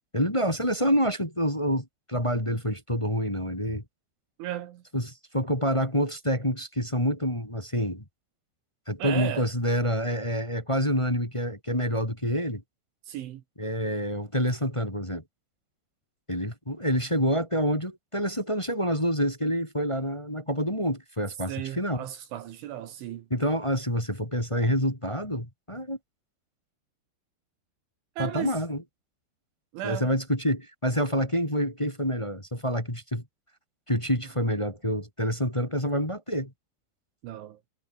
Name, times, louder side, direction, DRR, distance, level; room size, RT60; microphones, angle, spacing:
voice 1, 0.1-3.8 4.9-8.0 8.9-12.6 13.6-15.2 16.3-22.1 23.3-26.0 28.2-28.8 29.8-33.2 33.9-36.5, equal, 10° left, 2.6 m, -27 dB
voice 2, 4.4-4.8 9.0-9.5 13.1-13.4 21.5-23.3 28.2-28.5 29.7-30.1 37.2-37.6, right 12 dB, 75° right, 4.0 m, -35 dB
omnidirectional pair, 5.7 m